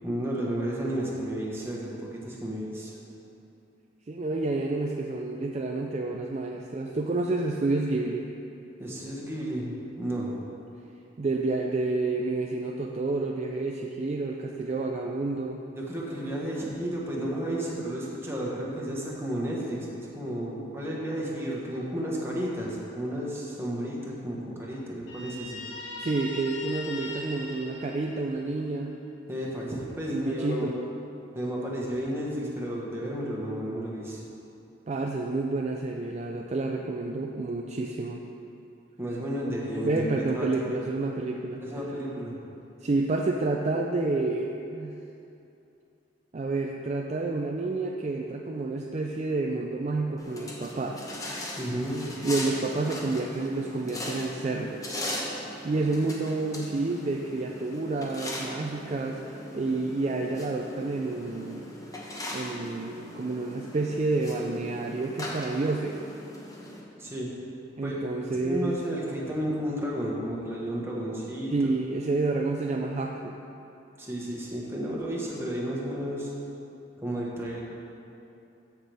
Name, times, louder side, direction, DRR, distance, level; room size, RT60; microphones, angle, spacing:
voice 1, 0.0-2.9 8.8-10.3 15.7-25.6 29.3-30.8 31.3-34.2 39.0-40.5 41.6-42.3 51.6-52.0 67.0-67.3 67.8-68.0 68.3-71.5 74.0-76.3 77.0-77.6, equal, 15° right, -4 dB, 1.3 m, -32 dB
voice 2, 4.1-8.3 11.2-15.6 26.0-28.9 30.1-30.8 34.9-38.2 39.8-41.6 42.8-44.9 46.3-51.1 52.2-54.8 55.6-59.2 59.5-61.7 62.3-66.0 67.8-68.8 71.5-73.4, right 3 dB, 35° right, 1 dB, 0.4 m, -29 dB
Guitar, 25.1-28.6, left 2 dB, 70° left, 1.4 m, -40 dB
sound 1, 50.2-66.8, left 1 dB, 20° left, 1.0 m, -39 dB
14.0 x 5.8 x 3.5 m, 2.8 s
head